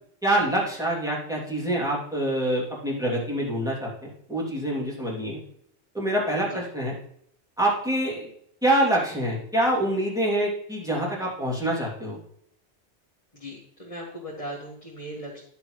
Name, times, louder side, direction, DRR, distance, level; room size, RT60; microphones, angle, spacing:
voice 1, 0.2-3.9 4.3-5.4 5.9-6.9 7.6-8.3 8.6-12.2, right 1 dB, 5° right, -5 dB, 2.7 m, -25 dB
voice 2, 13.3-15.4, equal, 30° left, -5 dB, 1.7 m, -38 dB
11.0 x 6.8 x 3.2 m, 0.68 s
omnidirectional pair, 1.2 m